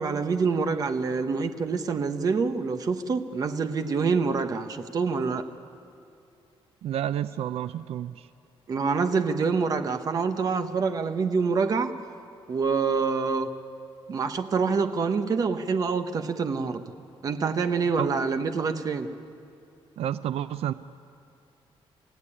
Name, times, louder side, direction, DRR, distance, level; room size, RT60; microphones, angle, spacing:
voice 1, 0.0-5.5 8.7-11.9 12.5-13.5 14.1-16.8 17.2-19.1, right 5 dB, 40° right, 8 dB, 1.0 m, -26 dB
voice 2, 6.8-8.3 18.0-18.1 20.0-20.7, right 11 dB, 85° right, 13 dB, 0.5 m, -30 dB
26.5 x 16.0 x 9.9 m, 2.6 s
wide cardioid pair, 180°, 10 cm